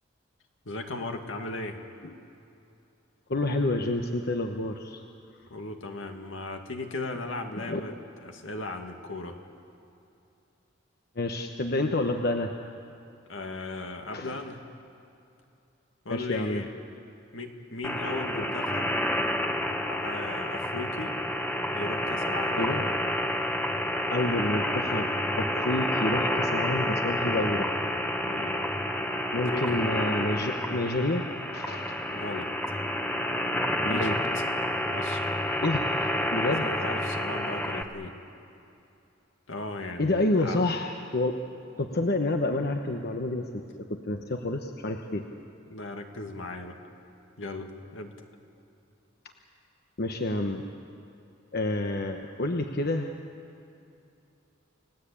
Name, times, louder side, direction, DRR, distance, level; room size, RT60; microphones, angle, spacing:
voice 1, 0.6-1.8 5.5-7.9 8.2-9.4 13.3-14.6 16.0-16.7 17.3-18.9 19.9-21.2 21.7-22.6 28.2-28.6 29.5-29.8 32.1-32.5 33.9-34.4 34.8-35.4 36.6-38.1 39.5-40.6 45.7-46.8 47.4-48.1, left 2 dB, 75° left, 4 dB, 2.2 m, -37 dB
voice 2, 3.3-5.0 7.7-7.8 11.2-12.5 14.1-14.4 16.1-16.7 18.4-18.5 22.6-22.8 24.1-25.1 25.4-27.7 29.3-31.3 31.5-31.9 33.8-34.1 35.6-36.7 40.0-41.4 41.8-45.2 50.0-50.6 51.5-53.1, left 2 dB, 55° left, 4 dB, 1.1 m, -29 dB
sound 1, 17.8-37.8, left 1 dB, 10° left, 1.2 m, -29 dB
30.0 x 18.5 x 8.6 m, 2.7 s
head